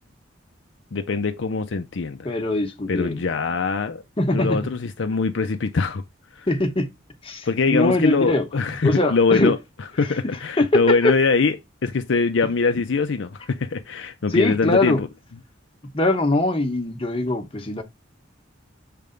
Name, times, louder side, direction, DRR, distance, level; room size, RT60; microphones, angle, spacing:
voice 1, 0.9-2.3 2.9-4.0 4.3-6.0 6.4-6.5 7.5-9.6 10.0-11.6 11.8-15.1, left 4 dB, 65° left, 0.5 m, -22 dB
voice 2, 2.2-3.2 4.2-4.6 6.5-6.9 7.2-9.6 10.2-11.1 14.3-15.0 15.9-17.8, left 2 dB, 30° left, 1.1 m, -22 dB
6.6 x 3.5 x 5.1 m
head